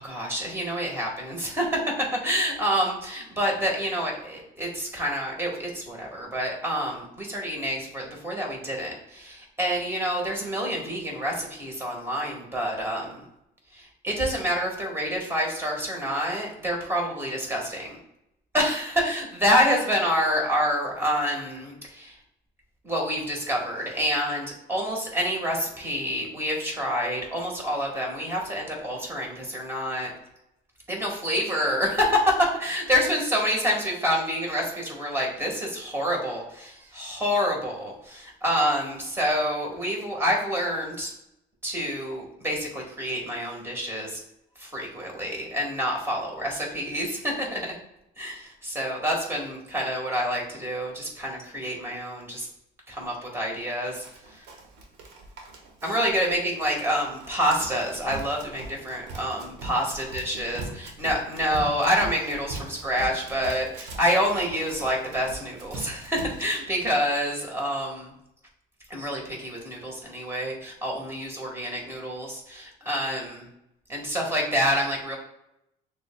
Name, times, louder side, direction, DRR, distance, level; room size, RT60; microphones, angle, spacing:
voice 1, 0.0-1.9 2.2-13.2 13.7-18.0 18.5-22.2 22.8-30.1 30.9-41.1 41.6-44.2 44.6-47.8 48.2-52.5 52.9-54.4 55.8-68.1 68.9-73.4 73.9-75.2, equal, 15° right, -1 dB, 1.4 m, -27 dB
Run, 54.0-66.5, right 2 dB, 80° right, 0.8 m, -41 dB
6.5 x 2.3 x 2.2 m, 0.82 s
cardioid pair, 110°, 17 cm